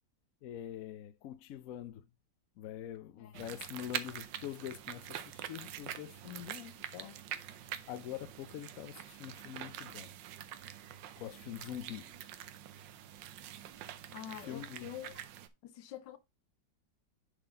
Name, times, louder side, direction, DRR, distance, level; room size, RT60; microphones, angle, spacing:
voice 1, 0.4-2.1 2.6-7.2 7.5-10.2 11.2-12.1 14.4-14.9, left 11 dB, 65° left, 0.9 m, -45 dB
voice 2, 3.2-3.5 14.1-15.1 15.6-16.2, left 11 dB, 85° left, 1.4 m, -46 dB
sound 1, 3.3-15.5, right 11 dB, 85° right, 1.4 m, -45 dB
9.9 x 4.0 x 3.8 m
omnidirectional pair, 1.9 m